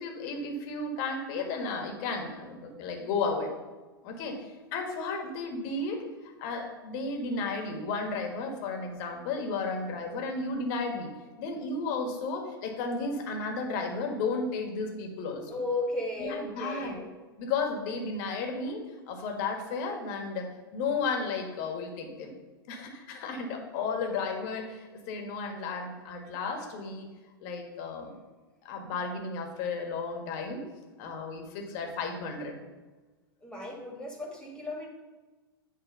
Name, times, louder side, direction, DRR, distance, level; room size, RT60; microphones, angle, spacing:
voice 1, 0.0-3.5 4.0-4.4 4.7-6.0 6.4-11.1 11.4-15.6 16.2-17.0 17.4-22.3 22.7-27.1 27.4-28.1 28.6-30.6 31.0-32.6, left 4 dB, 55° left, 3 dB, 1.6 m, -33 dB
voice 2, 15.5-17.1 33.4-34.9, left 2 dB, 5° left, -2 dB, 2.0 m, -35 dB
9.4 x 3.5 x 5.4 m, 1.3 s
figure-of-eight pair, 95°, 12 cm